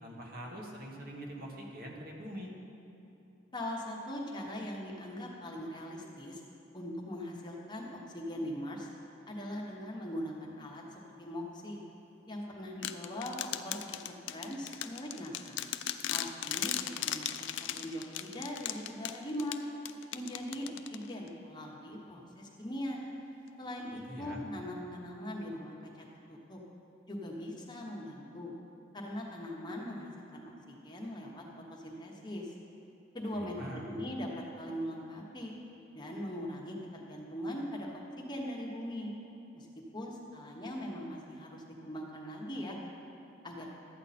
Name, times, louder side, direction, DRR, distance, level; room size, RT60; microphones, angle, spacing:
voice 1, 0.0-2.5 23.9-24.4 33.3-34.0, equal, 50° right, -1 dB, 1.5 m, -44 dB
voice 2, 3.5-6.4 6.7-8.9 9.3-11.8 12.3-15.6 16.1-19.6 20.1-23.0 23.6-26.6 27.1-28.5 28.9-31.4 31.7-32.5 33.1-34.3 34.6-35.5 35.9-39.1 39.5-39.7 39.9-42.8 43.4-43.7, equal, 25° left, -2 dB, 1.1 m, -41 dB
sound 1, 12.8-21.3, left 11 dB, 70° left, 0.4 m, -38 dB
12.5 x 8.9 x 4.2 m, 2.8 s
head